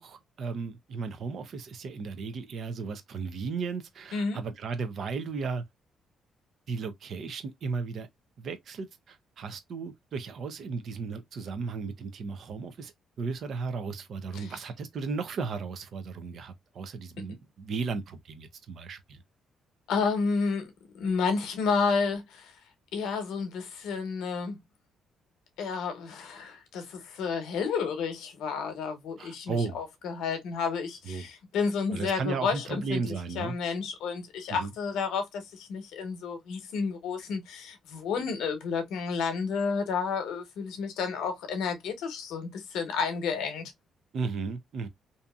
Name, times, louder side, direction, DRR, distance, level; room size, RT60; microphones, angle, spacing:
voice 1, 0.0-5.6 6.7-8.1 8.4-19.2 29.2-29.8 31.1-31.3 31.9-33.6 34.5-34.7 44.1-44.9, right 4 dB, 60° right, 0.6 m, -35 dB
voice 2, 19.9-22.5 22.9-24.6 25.6-33.0 33.3-43.7, left 5 dB, 85° left, 0.9 m, -31 dB
2.7 x 2.6 x 2.3 m
cardioid pair, 90°, 0 cm